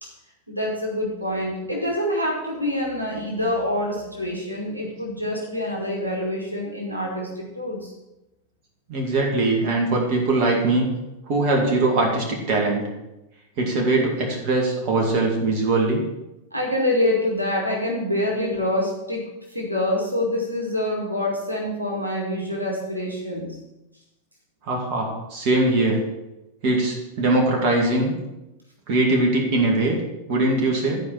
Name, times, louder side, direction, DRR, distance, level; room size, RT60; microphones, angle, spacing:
voice 1, 0.5-7.9 16.5-19.2 19.5-23.6, left 1 dB, 85° right, -2 dB, 2.1 m, -26 dB
voice 2, 8.9-10.9 11.3-12.9 13.6-16.0 24.7-26.0 26.6-28.1 28.9-30.0 30.3-31.0, right 2 dB, 45° right, 0 dB, 2.2 m, -21 dB
11.5 x 5.0 x 5.8 m, 0.95 s
figure-of-eight pair, 90°, 0 cm